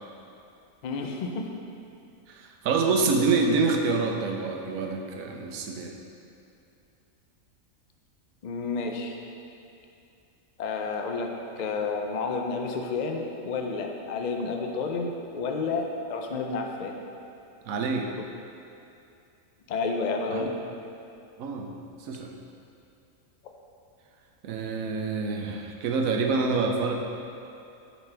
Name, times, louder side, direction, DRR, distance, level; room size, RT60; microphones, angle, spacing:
voice 1, 0.8-1.6 8.4-9.2 10.6-11.3 11.6-17.0 19.7-20.5, left 4 dB, 70° left, 2 dB, 0.4 m, -30 dB
voice 2, 2.3-6.0 17.7-18.1 20.3-20.5 21.4-21.7 22.0-22.3 24.4-26.9, right 4 dB, 80° right, 2 dB, 1.1 m, -26 dB
9.1 x 4.1 x 3.3 m, 2.6 s
omnidirectional pair, 1.4 m